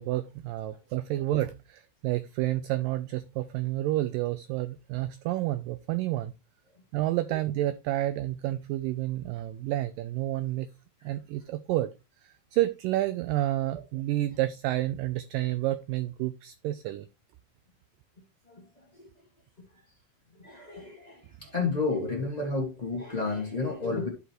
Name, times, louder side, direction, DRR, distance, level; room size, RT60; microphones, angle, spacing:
voice 1, 0.0-6.3 6.9-10.7 11.0-11.9 12.2-17.1, right 15 dB, 85° right, 2.0 m, -30 dB
voice 2, 20.4-24.1, left 3 dB, 50° left, 0.4 m, -31 dB
13.0 x 5.2 x 3.0 m
omnidirectional pair, 4.4 m